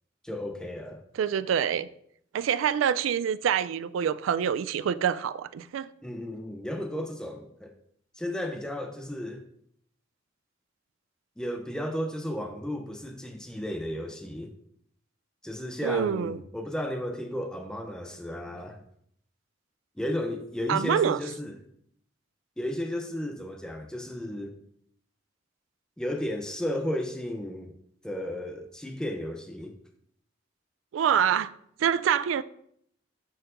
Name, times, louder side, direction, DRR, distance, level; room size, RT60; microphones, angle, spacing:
voice 1, 0.2-1.0 6.0-7.7 8.1-9.5 11.4-14.5 15.4-18.8 20.0-21.6 22.6-24.6 26.0-27.8 28.0-29.7, left 1 dB, 5° left, 0.5 m, -34 dB
voice 2, 1.2-1.9 2.3-5.9 15.8-16.4 20.7-21.2 30.9-31.5 31.8-32.4, right 8 dB, 85° right, 0.3 m, -26 dB
10.5 x 4.5 x 2.5 m
head